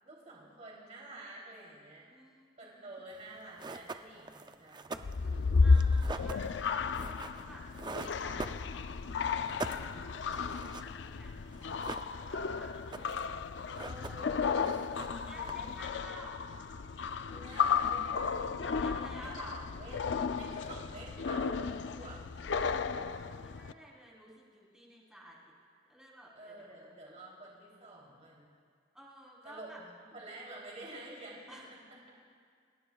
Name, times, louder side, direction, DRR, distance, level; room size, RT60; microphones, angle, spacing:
voice 1, 0.0-2.1 2.6-5.6 13.8-14.7 15.3-15.8 17.3-18.6 19.2-22.2 26.3-28.5 29.4-29.7 30.0-31.6, right 1 dB, 40° right, -4 dB, 3.2 m, -49 dB
voice 2, 2.0-3.0 5.6-7.6 7.9-10.5 10.7-13.0 15.1-16.4 18.5-19.6 22.9-25.5 25.9-26.9 27.3-27.4 28.9-29.8 31.5-31.7, right 1 dB, 5° right, -5 dB, 3.6 m, -53 dB
sound 1, 3.2-3.3 3.6-9.1 9.3-11.2 11.5-12.5 12.7-13.3 13.6-14.3 14.6-15.8, right 3 dB, 25° right, 0.5 m, -43 dB
sound 2, 5.0-23.7, left 5 dB, 70° left, 0.5 m, -33 dB
29.5 x 18.0 x 2.4 m, 2.1 s
head